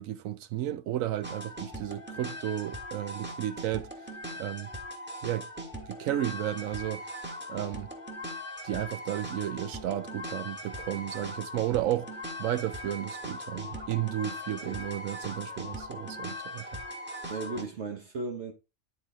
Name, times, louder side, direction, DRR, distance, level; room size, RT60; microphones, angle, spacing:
voice 1, 0.0-3.9 4.3-4.7 5.2-5.5 5.9-7.9 8.6-16.8, right 13 dB, 85° right, 1.0 m, -33 dB
sound 1, 1.2-17.6, equal, 10° right, 1.4 m, -40 dB
voice 2, 17.3-18.5, right 3 dB, 60° right, 1.3 m, -36 dB
10.5 x 4.1 x 3.7 m
omnidirectional pair, 1.4 m